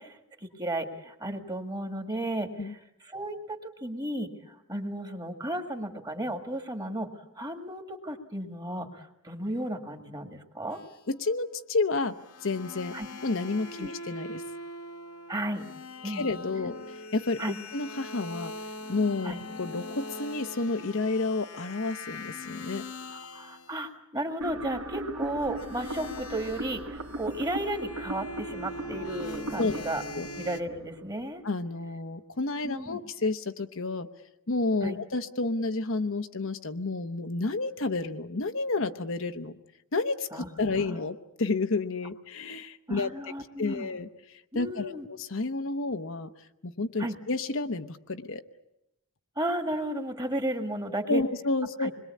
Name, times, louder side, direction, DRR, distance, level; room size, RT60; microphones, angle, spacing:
voice 1, 0.0-7.1 7.4-10.8 12.9-13.1 13.8-13.9 15.3-15.6 16.0-16.3 16.6-16.7 17.4-17.6 19.2-19.4 23.3-30.0 30.4-31.4 32.6-33.0 34.8-35.0 40.3-41.0 42.9-43.9 44.5-45.1 47.0-47.2 49.4-51.2 51.8-51.9, right 1 dB, 20° right, 6 dB, 2.0 m, -34 dB
sound 1, 10.7-11.4 12.2-23.8 25.5-30.6, left 2 dB, 75° left, 1.7 m, -42 dB
voice 2, 11.1-12.1 12.4-12.9 13.2-14.4 16.0-17.4 17.7-18.5 18.9-22.8 29.6-29.9 30.2-30.3 31.4-34.1 34.5-39.6 39.9-46.3 46.6-48.4 51.1-51.9, left 3 dB, 60° left, 8 dB, 1.0 m, -30 dB
sound 2, 24.4-31.4, right 1 dB, 90° right, 2.8 m, -39 dB
26.5 x 22.0 x 8.5 m, 0.85 s
head